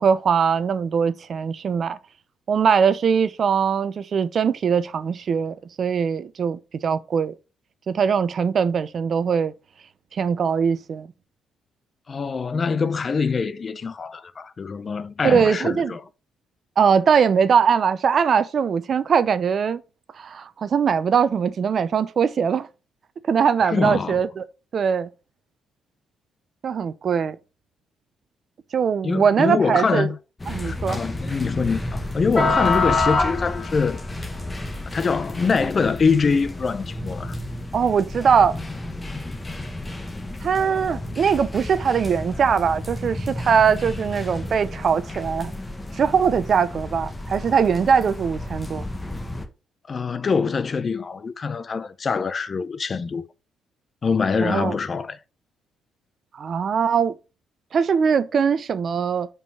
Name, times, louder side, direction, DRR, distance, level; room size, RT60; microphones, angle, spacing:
voice 1, 0.0-2.0 2.5-7.3 7.9-9.5 10.1-11.1 15.2-16.0 16.8-19.8 20.1-22.7 23.2-24.4 24.7-25.1 26.6-27.4 28.7-30.1 30.5-31.0 37.7-38.6 40.4-45.5 45.9-48.8 54.4-54.8 56.3-57.2 57.7-59.3, right 6 dB, 55° right, 0.7 m, -21 dB
voice 2, 12.1-16.0 23.6-24.2 29.0-30.2 30.6-34.0 34.9-37.4 49.9-53.2 54.0-55.2, left 5 dB, 45° left, 0.7 m, -24 dB
sound 1, 30.4-49.5, left 2 dB, 20° left, 1.5 m, -30 dB
5.3 x 4.9 x 6.1 m
hypercardioid pair, 50°, 0 cm